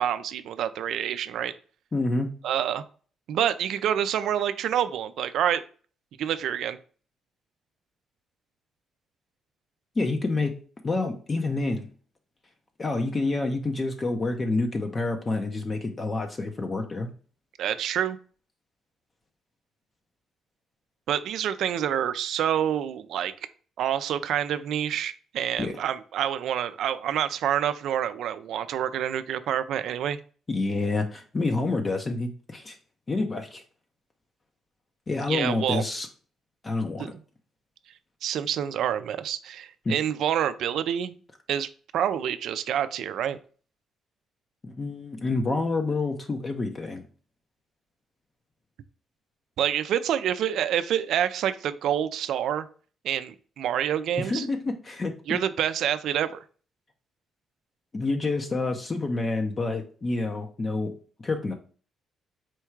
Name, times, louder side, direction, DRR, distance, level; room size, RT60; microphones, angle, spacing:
voice 1, 0.0-1.5 2.4-2.8 3.3-5.6 6.2-6.8 17.6-18.2 21.1-23.3 23.8-30.2 35.3-35.8 37.0-37.2 38.2-41.2 41.5-43.4 49.6-52.7 53.0-54.5 55.3-56.4, right 10 dB, 75° right, 12 dB, 0.4 m, -27 dB
voice 2, 1.9-2.3 10.0-10.6 10.8-11.9 12.8-17.1 25.6-25.7 30.5-32.8 33.1-33.6 35.1-36.1 36.6-37.1 39.9-40.0 44.6-47.0 54.2-55.1 57.9-60.9 61.2-61.5, left 3 dB, 30° left, 5 dB, 0.6 m, -28 dB
4.5 x 2.3 x 4.4 m, 0.40 s
cardioid pair, 90°, 0 cm